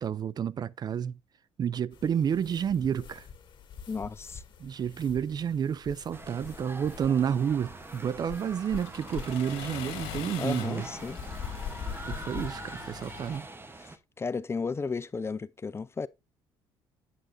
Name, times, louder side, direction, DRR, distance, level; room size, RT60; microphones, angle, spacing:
voice 1, 0.0-1.2 1.6-3.3 4.6-10.9 12.1-13.5, right 8 dB, 40° right, 0.3 m, -30 dB
sound 1, 1.9-12.6, left 7 dB, 50° left, 2.0 m, -44 dB
voice 2, 3.9-4.4 10.4-11.2 13.8-16.1, left 4 dB, 25° left, 0.4 m, -34 dB
sound 2, 6.1-14.0, right 2 dB, 20° right, 0.9 m, -44 dB
Accelerating revving vroom, 8.1-13.4, left 10 dB, 85° left, 1.2 m, -44 dB
8.0 x 7.6 x 2.6 m
supercardioid pair, 75°, 10 cm